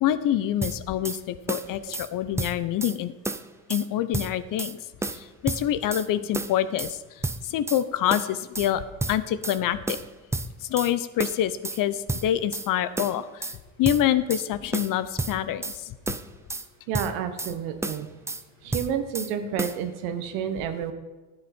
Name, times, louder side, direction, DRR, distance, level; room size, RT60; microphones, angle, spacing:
voice 1, 0.0-3.1 3.7-4.8 5.1-7.0 7.4-10.0 10.6-13.5 13.8-15.9, left 11 dB, 55° left, 14 dB, 0.7 m, -26 dB
sound 1, 0.6-1.2 1.5-2.1 2.4-3.0 3.3-3.9 4.1-4.7 5.0-6.1 6.3-6.9 7.2-7.8 8.1-8.7 9.0-9.6 9.9-10.9 11.2-11.8 12.1-12.7 13.0-13.6 13.8-14.5 14.7-15.8 16.1-16.7 16.9-17.5 17.8-18.4 18.7-19.3 19.6-19.8, right 2 dB, 5° right, 0.4 m, -31 dB
voice 2, 16.9-18.1 18.6-20.9, right 8 dB, 75° right, 8 dB, 1.2 m, -30 dB
12.0 x 7.8 x 4.3 m, 1.2 s
hypercardioid pair, 75°, 41 cm